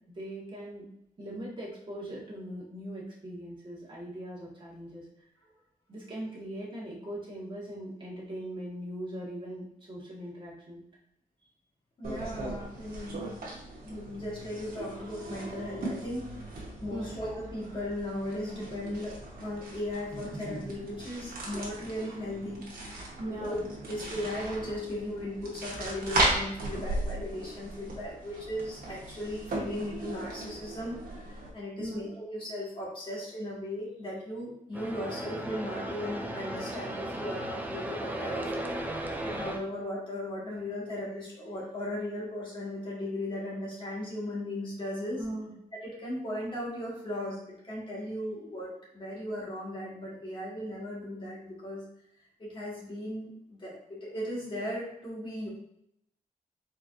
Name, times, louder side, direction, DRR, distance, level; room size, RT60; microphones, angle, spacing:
voice 1, 0.1-0.8 1.2-5.1 5.9-10.8 16.9-17.2 21.5-21.6 23.2-23.6 31.8-32.0 45.2-45.5, right 1 dB, 35° right, -6 dB, 1.5 m, -40 dB
voice 2, 12.0-13.4 13.8-19.1 19.4-22.6 23.2-23.6 23.9-45.2 45.7-51.8 52.4-55.5, left 1 dB, 35° left, -5 dB, 1.6 m, -37 dB
sound 1, 12.0-31.5, right 2 dB, 85° right, 1.2 m, -37 dB
sound 2, 34.7-39.6, right 1 dB, 10° right, 0.4 m, -36 dB
4.5 x 4.0 x 2.6 m, 0.76 s
wide cardioid pair, 165°, 15 cm